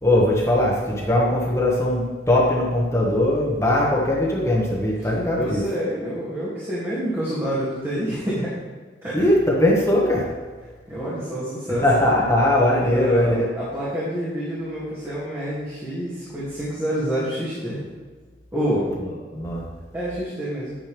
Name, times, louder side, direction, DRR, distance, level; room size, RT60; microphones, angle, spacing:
voice 1, 0.0-5.6 9.1-10.2 11.8-13.5 19.3-19.6, left 1 dB, 15° left, -4 dB, 1.4 m, -20 dB
voice 2, 5.3-8.5 9.0-9.2 10.9-11.8 12.8-17.8 18.5-18.9 19.9-20.8, equal, 15° right, -11 dB, 2.5 m, -27 dB
9.7 x 9.1 x 3.5 m, 1.4 s
head